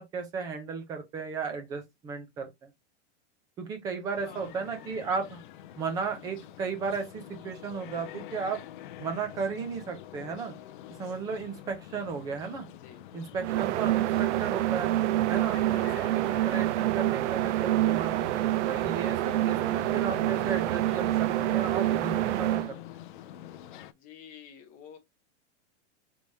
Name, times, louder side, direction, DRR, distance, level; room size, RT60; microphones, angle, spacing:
voice 1, 0.0-2.7 3.6-5.4 5.8-8.6 9.0-10.5 11.0-12.7 13.1-14.9 15.3-18.3 18.7-22.6, right 5 dB, 10° right, 0.5 m, -35 dB
sound 1, 4.2-23.9, left 12 dB, 45° left, 0.4 m, -46 dB
voice 2, 4.2-4.6 12.8-13.0 23.9-25.0, left 8 dB, 20° left, 0.8 m, -49 dB
sound 2, 13.4-22.7, right 15 dB, 75° right, 0.5 m, -27 dB
4.7 x 3.4 x 2.6 m
supercardioid pair, 175°, 35 cm